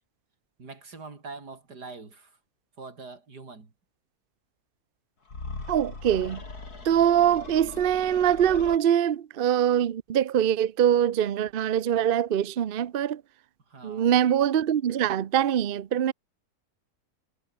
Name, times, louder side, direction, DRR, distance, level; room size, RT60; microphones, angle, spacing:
voice 1, 0.6-2.4 2.8-3.7 13.7-14.2, right 4 dB, 90° right, 4.2 m, -43 dB
sound 1, 5.3-8.8, left 3 dB, 70° left, 4.3 m, -40 dB
voice 2, 5.7-6.4 6.8-13.2 13.8-16.1, right 10 dB, 50° right, 0.7 m, -23 dB
omnidirectional pair, 1.7 m